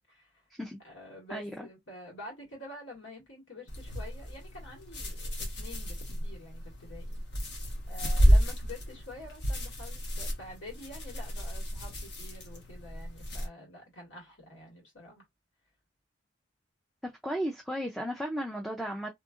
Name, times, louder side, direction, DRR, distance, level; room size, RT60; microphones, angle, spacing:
voice 1, 0.1-0.4 0.8-7.2 7.9-15.3, left 1 dB, 75° left, 1.7 m, -48 dB
voice 2, 1.3-1.7 17.0-19.1, equal, ahead, 0.3 m, -35 dB
sound 1, 3.7-13.5, equal, 60° left, 1.0 m, -31 dB
2.7 x 2.6 x 2.3 m
head